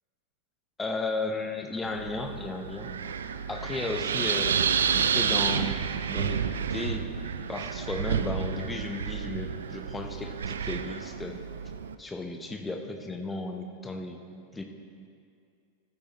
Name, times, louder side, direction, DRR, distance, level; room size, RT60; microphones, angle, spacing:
voice 1, 0.8-2.9 3.5-4.7 4.9-5.8 6.1-7.1 7.5-11.4 12.0-14.2 14.5-14.6, left 2 dB, 10° left, 4 dB, 0.9 m, -34 dB
Wind, 1.8-11.9, right 7 dB, 65° right, 0.4 m, -30 dB
15.0 x 8.5 x 3.0 m, 2.3 s
figure-of-eight pair, 90°, 0 cm